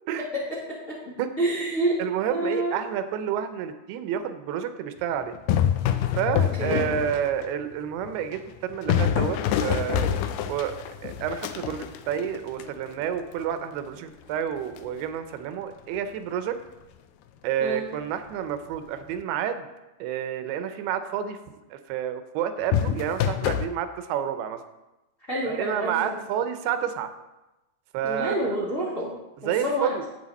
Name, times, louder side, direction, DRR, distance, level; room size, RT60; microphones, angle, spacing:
voice 1, 1.4-1.9 2.3-2.8 6.6-6.8 17.6-17.8 25.3-26.0 28.0-29.1 29.4-29.9, right 1 dB, 25° left, -7 dB, 2.0 m, -27 dB
voice 2, 2.0-5.3 6.2-10.1 10.5-10.7 11.0-16.6 17.4-19.7 20.0-21.4 21.7-24.6 25.5-27.1 27.9-28.4 29.5-30.0, right 9 dB, 90° right, 9 dB, 2.8 m, -29 dB
sound 1, 5.3-7.5 8.0-13.0 14.8-15.0 22.7-23.7, left 9 dB, 80° left, 1.9 m, -26 dB
11.5 x 8.4 x 4.2 m, 1.0 s
omnidirectional pair, 4.5 m